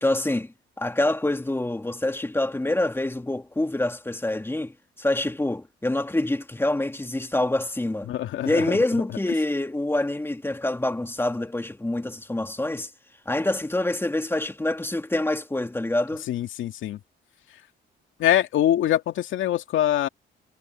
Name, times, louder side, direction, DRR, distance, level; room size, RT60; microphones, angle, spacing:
voice 1, 0.0-8.1 8.4-12.9 13.3-16.3, left 1 dB, 10° left, 2.4 m, -26 dB
voice 2, 8.1-8.8 16.3-17.0 18.2-20.1, left 12 dB, 80° left, 2.2 m, -24 dB
cardioid pair, 90°, 20 cm